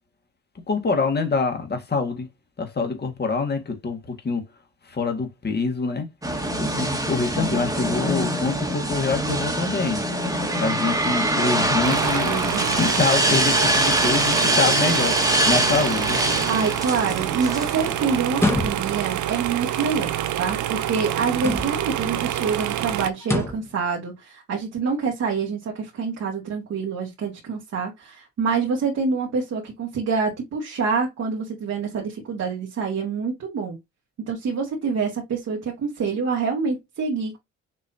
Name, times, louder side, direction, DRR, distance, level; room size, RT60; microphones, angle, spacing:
voice 1, 0.7-2.3 2.6-4.4 4.9-6.1 6.6-10.0 10.6-16.2, left 4 dB, 35° left, 1.9 m, -25 dB
sound 1, 6.2-18.2, right 1 dB, 10° right, 1.7 m, -24 dB
sound 2, 11.8-23.1, right 12 dB, 75° right, 0.7 m, -27 dB
voice 2, 16.4-20.1 20.4-33.8 34.3-37.4, right 5 dB, 60° right, 1.9 m, -26 dB
sound 3, 18.3-19.1 21.3-22.0 23.2-23.7, left 2 dB, 10° left, 1.6 m, -26 dB
6.2 x 3.1 x 2.7 m
cardioid pair, 90°, 30 cm